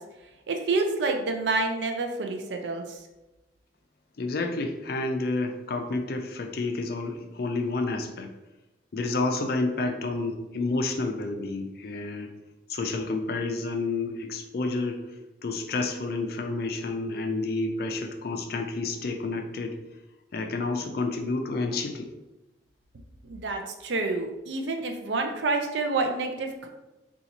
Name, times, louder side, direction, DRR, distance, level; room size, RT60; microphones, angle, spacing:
voice 1, 0.5-3.0 23.2-26.7, right 3 dB, 80° right, 4 dB, 0.5 m, -28 dB
voice 2, 4.2-8.3 8.9-12.3 12.7-15.0 15.4-19.8 20.3-22.1, left 3 dB, 55° left, 4 dB, 0.4 m, -30 dB
2.8 x 2.4 x 3.9 m, 1.0 s
head